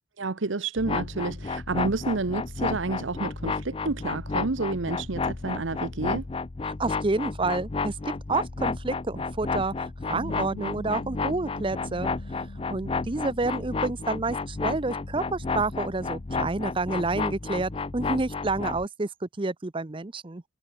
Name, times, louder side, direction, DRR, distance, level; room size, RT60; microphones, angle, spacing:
voice 1, 0.2-6.2, right 3 dB, 75° right, 1.0 m, -30 dB
sound 1, 0.8-18.9, left 4 dB, 30° left, 0.5 m, -32 dB
voice 2, 6.6-12.1 12.4-20.4, right 3 dB, 25° right, 0.7 m, -29 dB
Bass guitar, 10.1-16.4, equal, 85° left, 6.3 m, -45 dB
head